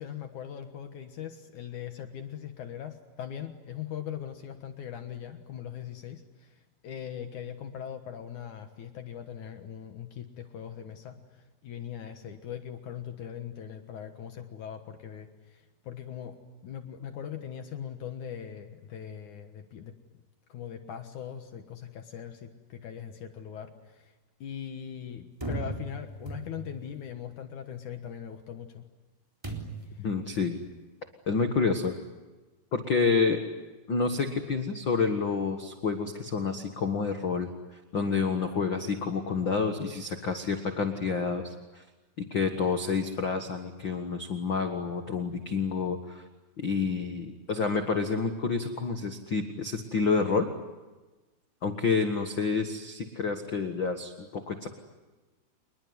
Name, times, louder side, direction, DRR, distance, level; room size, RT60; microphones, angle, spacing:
voice 1, 0.0-16.4 16.6-20.2 20.5-24.1 24.4-28.9 29.9-30.1, left 9 dB, 60° left, 7 dB, 2.3 m, -40 dB
sound 1, 25.4-26.9 29.4-30.0, right 2 dB, 5° right, 3.1 m, -37 dB
voice 2, 30.0-30.6 31.3-32.0 32.7-33.4 33.9-41.8 42.2-46.2 46.6-50.5 51.6-54.7, left 4 dB, 80° left, 6 dB, 1.0 m, -29 dB
28.0 x 21.0 x 9.6 m, 1.2 s
omnidirectional pair, 4.8 m